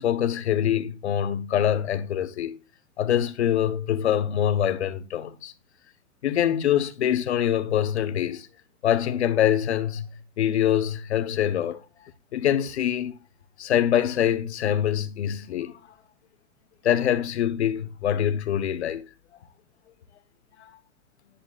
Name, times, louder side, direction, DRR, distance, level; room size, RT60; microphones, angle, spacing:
voice 1, 0.0-2.6 3.0-5.5 6.2-8.5 8.8-11.8 12.3-13.1 13.6-15.8 16.8-19.1 20.6-20.8, left 10 dB, 55° left, 1.3 m, -24 dB
10.5 x 10.5 x 2.5 m
hypercardioid pair, 180°, 41 cm